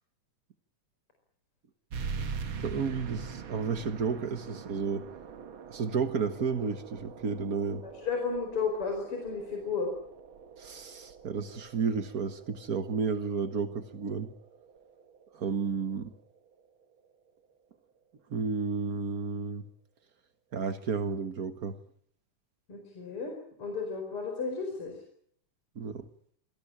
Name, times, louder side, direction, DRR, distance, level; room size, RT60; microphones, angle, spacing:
sound 1, 1.9-17.0, right 5 dB, 50° right, 1.9 m, -43 dB
voice 1, 2.6-5.0 5.7-7.8 10.6-14.3 15.3-16.1 18.3-19.7 20.5-21.7 25.7-26.1, right 5 dB, 90° right, 9 dB, 0.8 m, -32 dB
voice 2, 7.8-9.9 22.7-24.9, left 5 dB, 40° left, 2 dB, 5.5 m, -33 dB
27.0 x 18.5 x 8.7 m, 0.64 s
omnidirectional pair, 3.7 m